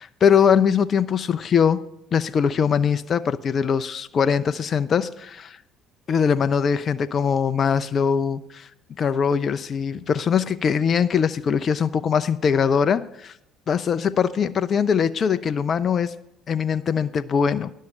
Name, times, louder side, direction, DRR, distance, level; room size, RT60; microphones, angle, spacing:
voice 1, 0.0-1.8 2.1-5.6 6.1-8.7 9.0-13.3 13.7-16.1 16.5-17.7, left 7 dB, 45° left, 12 dB, 0.4 m, -21 dB
11.0 x 6.4 x 7.0 m, 0.77 s
hypercardioid pair, 55°, 0 cm